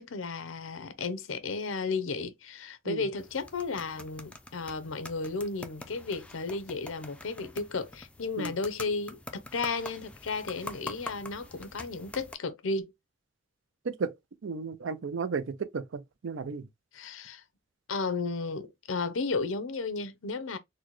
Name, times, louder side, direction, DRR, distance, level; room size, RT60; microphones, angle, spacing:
voice 1, 0.0-12.9 16.9-17.4 17.9-20.6, left 4 dB, 90° left, 0.6 m, -34 dB
sound 1, 3.2-12.4, left 2 dB, 5° left, 0.4 m, -45 dB
voice 2, 13.8-14.1 14.4-16.7, right 4 dB, 70° right, 0.5 m, -34 dB
4.1 x 2.2 x 3.0 m
head